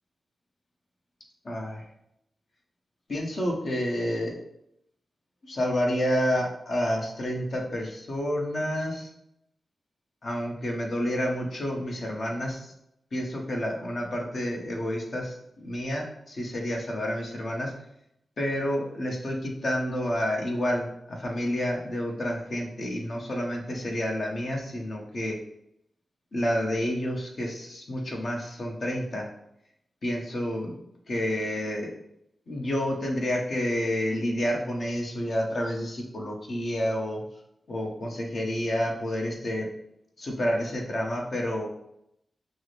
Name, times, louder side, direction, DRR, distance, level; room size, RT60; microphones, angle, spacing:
voice 1, 1.4-1.8 3.1-4.4 5.4-9.1 10.2-12.7 13.1-17.7 18.4-25.4 26.3-29.3 30.0-30.7 31.1-31.9 32.5-37.2 37.7-39.7 40.2-41.7, equal, 60° left, 0 dB, 1.0 m, -29 dB
5.9 x 2.1 x 3.3 m, 0.77 s
cardioid pair, 50°, 0 cm